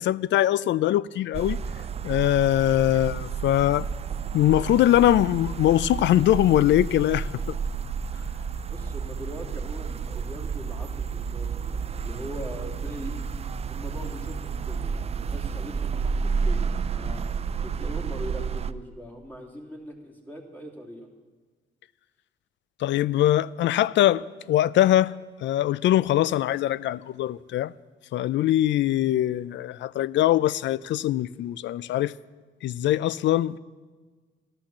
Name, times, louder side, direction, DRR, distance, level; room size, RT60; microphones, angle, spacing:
voice 1, 0.0-1.6 2.0-3.9 4.3-7.5 22.8-25.1 25.4-27.7 28.1-32.1 32.6-33.6, left 13 dB, 70° left, 0.4 m, -22 dB
sound 1, 1.3-18.7, right 6 dB, 30° right, 0.4 m, -31 dB
voice 2, 8.7-13.2 13.7-17.2 17.6-21.1, equal, 10° left, 2.7 m, -41 dB
13.5 x 11.5 x 7.2 m
cardioid pair, 90°, 20 cm